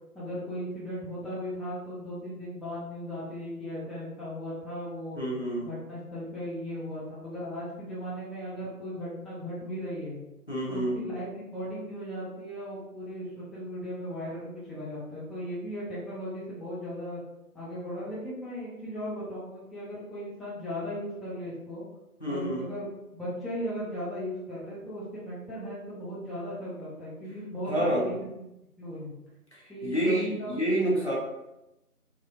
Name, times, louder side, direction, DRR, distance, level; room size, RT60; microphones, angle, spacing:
voice 1, 0.1-5.2 5.6-10.2 10.7-17.2 17.5-21.8 22.3-28.4 28.8-29.1 29.7-30.6, equal, ahead, -9 dB, 0.5 m, -37 dB
voice 2, 5.1-5.7 10.5-11.0 22.2-22.7 27.7-28.1 29.5-31.1, right 1 dB, 45° left, -6 dB, 0.7 m, -28 dB
2.7 x 2.0 x 2.5 m, 0.93 s
figure-of-eight pair, 175°, 46 cm